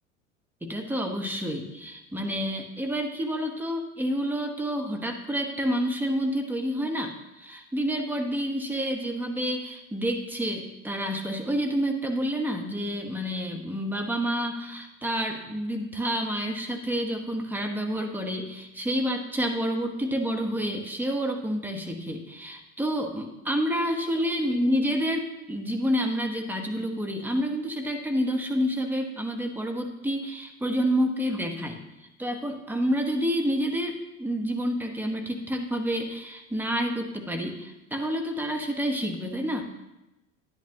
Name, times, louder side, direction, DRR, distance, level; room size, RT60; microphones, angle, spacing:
voice 1, 0.6-31.8 32.2-39.6, equal, 5° right, 3 dB, 1.2 m, -29 dB
10.5 x 10.5 x 3.0 m, 0.94 s
figure-of-eight pair, 80°, 38 cm